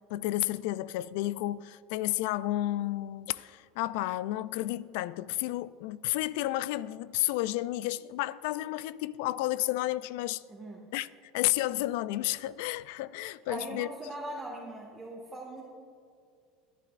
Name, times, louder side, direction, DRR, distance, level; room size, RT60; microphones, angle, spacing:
voice 1, 0.1-10.4 10.9-11.1 11.3-13.9, left 16 dB, 75° left, 0.3 m, -31 dB
voice 2, 10.5-10.8 13.5-15.6, right 1 dB, 15° right, 1.8 m, -40 dB
22.0 x 11.0 x 2.5 m
hypercardioid pair, 95°, 0 cm